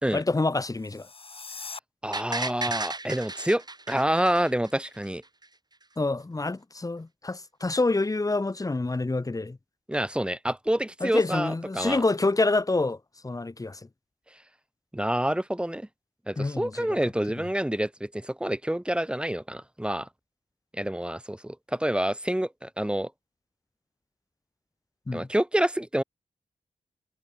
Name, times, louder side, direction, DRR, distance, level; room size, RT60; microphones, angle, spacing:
voice 1, 0.1-1.1 6.0-9.6 11.0-13.0 13.2-13.8 16.4-17.0 25.1-25.3, left 2 dB, 25° left, 1.5 m, -27 dB
sound 1, 0.7-1.8, left 4 dB, 45° left, 4.3 m, -41 dB
voice 2, 2.0-5.2 9.9-12.0 14.9-15.9 16.3-20.1 20.7-23.1 25.1-26.0, right 1 dB, 10° right, 3.0 m, -28 dB
sound 2, 2.1-5.1 5.4-5.5, right 3 dB, 35° right, 7.7 m, -34 dB
cardioid pair, 70°, 13 cm